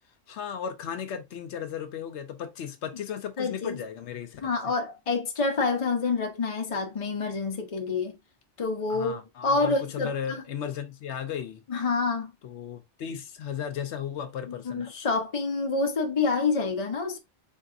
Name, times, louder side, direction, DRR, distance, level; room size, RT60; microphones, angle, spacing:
voice 1, 0.3-4.4 8.9-11.6 12.4-14.9, left 8 dB, 80° left, 0.9 m, -35 dB
voice 2, 3.4-3.8 4.4-8.2 8.6-10.4 11.7-12.3 14.6-17.2, left 4 dB, 35° left, 0.8 m, -27 dB
3.9 x 3.5 x 2.5 m
omnidirectional pair, 1.2 m